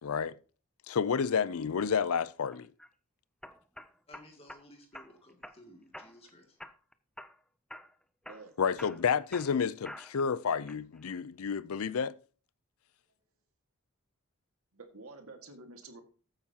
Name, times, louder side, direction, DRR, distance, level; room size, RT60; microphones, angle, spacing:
voice 1, 0.0-0.4 0.9-2.7 8.6-12.1, left 6 dB, 80° left, 0.5 m, -30 dB
sound 1, 2.5-2.9 3.4-4.6 4.9-5.6 5.9-6.3 6.6-7.4 7.7-7.9 8.3-10.3 10.7-11.2, left 1 dB, 5° left, 0.4 m, -48 dB
voice 2, 4.1-6.6, left 1 dB, 25° left, 2.3 m, -56 dB
voice 3, 8.3-8.6 14.7-16.0, right 3 dB, 85° right, 1.8 m, -49 dB
14.5 x 8.8 x 2.8 m
head